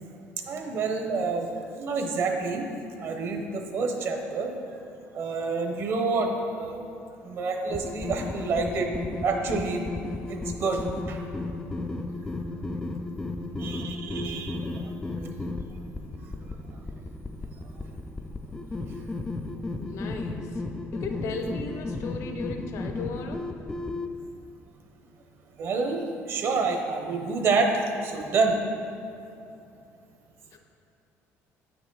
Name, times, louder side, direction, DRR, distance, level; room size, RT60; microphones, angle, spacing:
voice 1, 0.5-2.7 3.0-4.5 5.1-6.8 7.2-8.9 9.2-9.8 10.3-11.2 13.6-14.8 15.1-15.3 25.6-28.5, right 4 dB, 50° right, 3 dB, 0.9 m, -28 dB
sound 1, 7.7-24.1, left 2 dB, 10° left, 0.3 m, -34 dB
voice 2, 19.8-20.6 20.9-23.5 30.5-30.6, left 3 dB, 60° left, 5 dB, 0.8 m, -36 dB
9.0 x 5.9 x 3.9 m, 2.7 s
cardioid pair, 145°, 6 cm